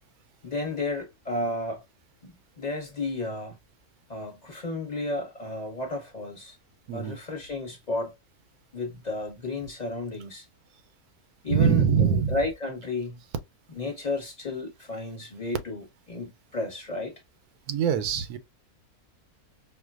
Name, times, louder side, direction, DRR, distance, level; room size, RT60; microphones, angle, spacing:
voice 1, 0.4-1.8 2.2-3.6 4.1-6.6 6.9-8.1 8.7-10.4 11.4-13.2 13.8-17.1, left 2 dB, 30° left, 1.0 m, -33 dB
voice 2, 11.5-12.4 17.7-18.4, right 7 dB, 85° right, 1.1 m, -23 dB
4.7 x 2.2 x 2.3 m
omnidirectional pair, 1.5 m